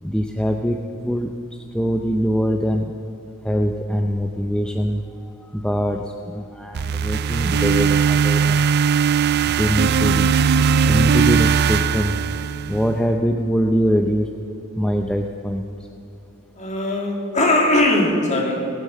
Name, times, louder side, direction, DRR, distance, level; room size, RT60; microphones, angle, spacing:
voice 1, 0.0-2.9 3.4-5.0 5.4-8.7 9.6-10.3 10.9-12.2 12.7-14.3 14.8-15.6, equal, 5° left, 3 dB, 0.5 m, -23 dB
sound 1, 6.7-12.9, right 6 dB, 45° right, 0.3 m, -19 dB
voice 2, 16.5-18.7, left 1 dB, 30° left, 0 dB, 2.3 m, -19 dB
19.0 x 9.2 x 7.5 m, 2.7 s
head